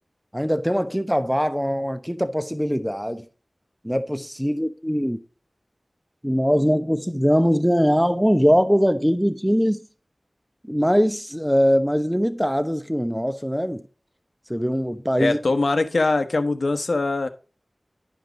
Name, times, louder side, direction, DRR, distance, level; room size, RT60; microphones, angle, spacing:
voice 1, 0.3-3.2 3.8-5.2 6.2-9.8 10.6-13.8 14.5-15.4, equal, ahead, 0.9 m, -21 dB
voice 2, 15.2-17.3, left 3 dB, 75° left, 0.9 m, -22 dB
10.5 x 5.1 x 3.9 m
wide cardioid pair, 55°, 0 cm